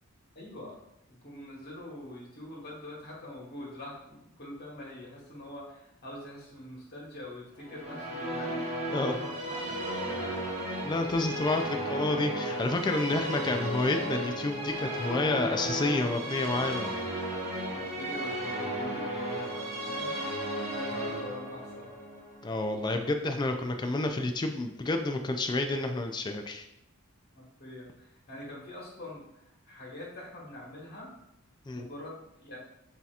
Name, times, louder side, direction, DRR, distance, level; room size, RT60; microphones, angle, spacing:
voice 1, 0.3-0.7 1.1-8.6 9.1-10.4 17.7-21.9 27.3-31.1 31.7-32.6, left 1 dB, 50° left, -4 dB, 1.4 m, -45 dB
Musical instrument, 7.6-23.1, right 1 dB, 30° right, 1.1 m, -34 dB
voice 2, 10.8-16.9 22.4-26.6 31.7-31.8, left 2 dB, 20° left, 5 dB, 0.3 m, -29 dB
7.2 x 2.8 x 2.4 m, 0.83 s
head